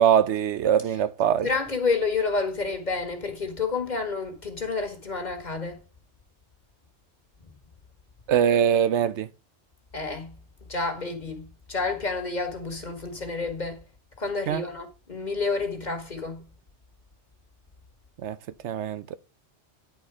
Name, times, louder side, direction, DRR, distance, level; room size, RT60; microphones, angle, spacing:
voice 1, 0.0-1.5 8.3-9.3 14.5-14.6 18.2-18.4 18.6-19.2, right 9 dB, 75° right, 0.9 m, -22 dB
voice 2, 1.4-5.8 9.9-10.3 10.7-13.8 14.2-16.4, left 4 dB, 40° left, 1.7 m, -29 dB
10.5 x 4.3 x 4.7 m
omnidirectional pair, 1.2 m